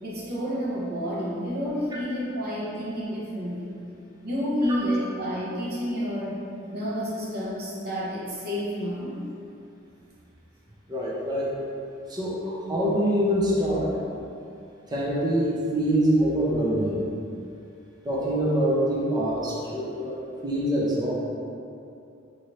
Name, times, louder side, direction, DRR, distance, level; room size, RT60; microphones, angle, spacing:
voice 1, 0.0-3.7 4.2-6.4 6.7-9.2, equal, 50° right, -6 dB, 0.9 m, -29 dB
voice 2, 10.9-11.5 12.1-13.9 14.9-17.0 18.0-20.2 20.4-21.1, equal, 20° right, -6 dB, 0.5 m, -24 dB
4.0 x 2.7 x 3.1 m, 2.6 s
head